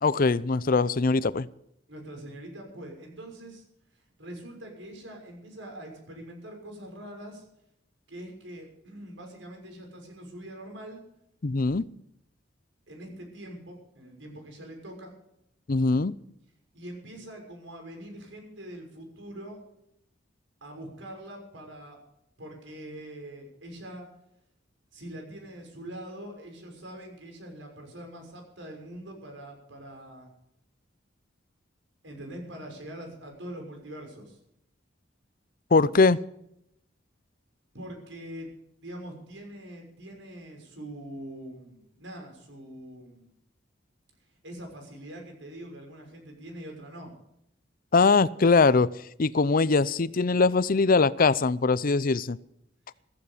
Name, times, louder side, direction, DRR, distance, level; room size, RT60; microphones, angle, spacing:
voice 1, 0.0-1.5 11.4-11.9 15.7-16.2 35.7-36.2 47.9-48.9 49.2-52.4, left 4 dB, 50° left, 18 dB, 0.6 m, -22 dB
voice 2, 1.9-3.6 4.2-7.4 8.1-11.0 12.9-15.1 16.7-19.6 20.6-22.0 22.4-24.1 24.9-30.3 32.0-34.4 37.7-38.5 38.8-43.3 44.4-47.1, right 1 dB, 85° right, 3 dB, 6.4 m, -43 dB
15.0 x 15.0 x 5.1 m, 0.76 s
head